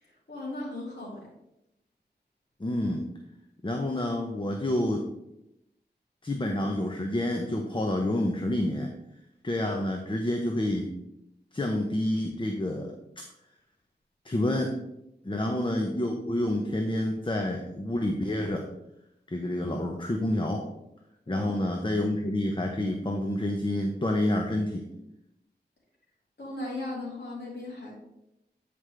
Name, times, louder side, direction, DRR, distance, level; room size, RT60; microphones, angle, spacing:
voice 1, 0.0-1.3 15.3-15.5 21.3-21.6 26.4-27.9, left 1 dB, 75° left, -5 dB, 3.1 m, -37 dB
voice 2, 2.6-3.1 3.6-5.0 6.2-8.9 9.4-10.9 11.5-12.9 14.2-14.7 15.2-18.6 19.3-20.6 21.3-24.8, left 1 dB, 30° left, 2 dB, 0.8 m, -28 dB
9.4 x 5.1 x 3.3 m, 0.84 s
wide cardioid pair, 70°, 18 cm